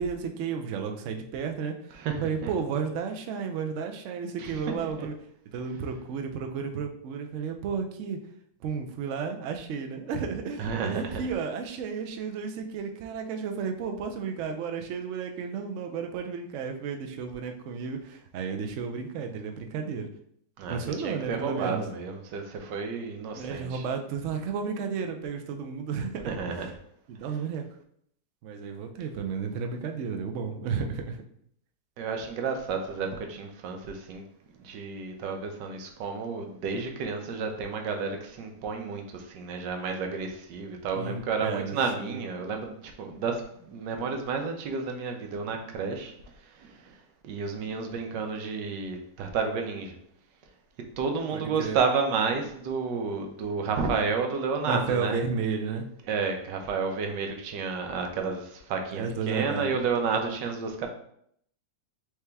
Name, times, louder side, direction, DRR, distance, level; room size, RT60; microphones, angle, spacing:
voice 1, 0.0-1.8 2.2-5.1 5.5-8.2 8.6-20.1 20.7-21.8 23.3-26.6 27.1-27.6 28.4-31.2 41.0-42.2 51.3-51.8 54.7-55.9 58.9-59.8, right 6 dB, 70° right, 5 dB, 0.7 m, -32 dB
voice 2, 2.0-2.5 4.4-4.6 5.0-5.1 10.6-11.2 20.6-23.8 26.2-26.7 32.0-34.2 34.6-46.1 46.5-47.0 47.2-50.0 51.0-55.2 56.1-60.9, right 5 dB, 90° right, 4 dB, 1.4 m, -31 dB
4.7 x 2.9 x 3.3 m, 0.68 s
omnidirectional pair, 1.8 m